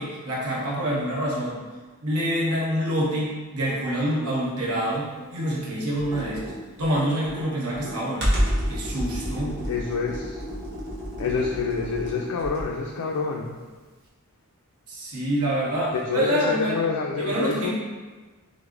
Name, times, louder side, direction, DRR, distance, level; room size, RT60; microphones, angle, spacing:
voice 1, 0.0-1.6 2.0-6.5 6.8-8.3 8.7-9.6 14.9-16.8 17.2-17.7, equal, 85° right, -4 dB, 1.0 m, -26 dB
Computer keyboard, 6.0-12.8, equal, 50° right, 1.0 m, -29 dB
voice 2, 9.7-10.4 11.2-13.6 15.9-17.7, left 5 dB, 80° left, -1 dB, 0.4 m, -27 dB
6.1 x 2.1 x 2.4 m, 1.3 s
head